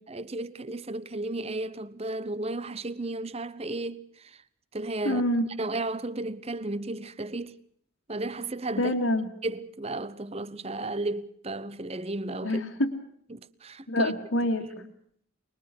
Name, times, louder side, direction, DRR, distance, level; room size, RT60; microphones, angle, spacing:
voice 1, 0.1-4.4 4.7-5.2 5.6-7.5 8.1-8.9 9.4-12.6 13.3-14.1 14.8-14.9, right 2 dB, 30° right, 0.9 m, -34 dB
voice 2, 5.0-5.5 8.8-9.3 12.4-12.9 13.9-14.7, left 1 dB, 80° left, 2.5 m, -26 dB
25.0 x 22.0 x 6.2 m
head